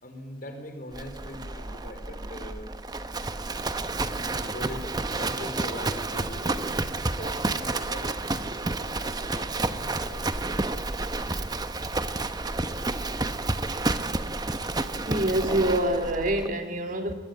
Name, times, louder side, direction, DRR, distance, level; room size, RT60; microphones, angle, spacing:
voice 1, 0.0-2.8 4.1-6.7 7.0-10.3, left 1 dB, 50° left, 6 dB, 4.5 m, -41 dB
Livestock farm animals working animals, 0.9-16.5, right 2 dB, 20° right, 1.0 m, -30 dB
voice 2, 15.1-17.1, right 1 dB, 45° right, 5 dB, 2.5 m, -26 dB
21.5 x 21.5 x 9.2 m, 1.1 s
head